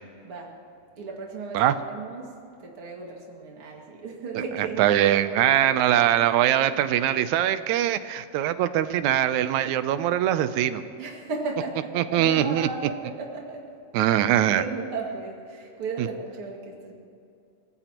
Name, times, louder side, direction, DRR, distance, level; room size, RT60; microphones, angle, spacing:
voice 1, 1.0-2.3 2.6-5.8 11.0-13.7 14.6-16.9, right 3 dB, 50° right, -1 dB, 2.8 m, -35 dB
voice 2, 4.6-10.8 12.0-12.7 13.9-14.6, right 11 dB, 80° right, 12 dB, 2.0 m, -22 dB
24.0 x 18.5 x 3.0 m, 2.5 s
omnidirectional pair, 3.3 m